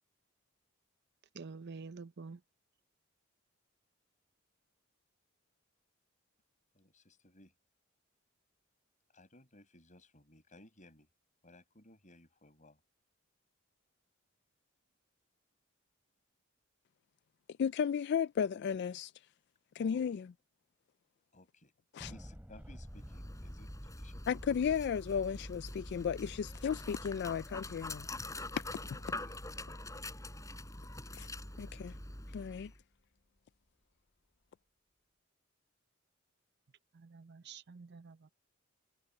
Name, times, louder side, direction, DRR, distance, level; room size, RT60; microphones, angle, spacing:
voice 1, 1.3-2.4 36.9-38.3, right 4 dB, 55° right, 0.6 m, -48 dB
voice 2, 6.7-7.5 9.1-11.1 11.4-12.8 19.8-20.0 21.3-21.7 22.1-24.4 28.8-29.4, left 1 dB, 40° left, 6.2 m, -60 dB
voice 3, 17.6-19.1 19.8-20.3 21.9-22.1 24.3-28.1 28.6-28.7 31.1-31.3 31.6-31.9 32.3-32.7, left 7 dB, 55° left, 0.3 m, -34 dB
Thunder, 22.0-32.6, equal, 10° right, 3.6 m, -53 dB
Dog, 22.8-32.8, left 2 dB, 15° left, 5.4 m, -45 dB
head